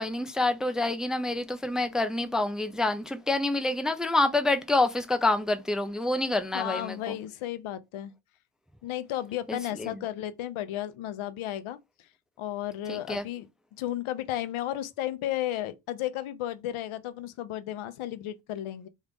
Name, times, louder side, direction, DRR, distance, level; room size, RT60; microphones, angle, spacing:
voice 1, 0.0-7.2 9.5-10.0 12.9-13.2, left 2 dB, ahead, 0.3 m, -27 dB
voice 2, 6.5-8.1 8.8-11.8 12.4-13.5 13.8-18.9, left 12 dB, 75° left, 0.7 m, -33 dB
3.1 x 2.4 x 3.4 m
cardioid pair, 75°, 50 cm